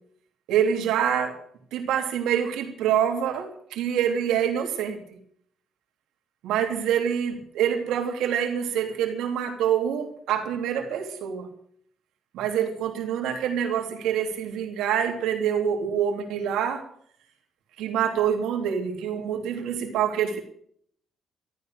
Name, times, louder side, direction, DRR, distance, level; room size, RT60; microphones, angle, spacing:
voice 1, 0.5-1.4 1.7-5.0 6.4-11.5 12.3-16.8 17.8-20.4, right 8 dB, 85° right, 3 dB, 3.2 m, -26 dB
14.0 x 12.5 x 6.7 m, 0.63 s
cardioid pair, 90°, 0 cm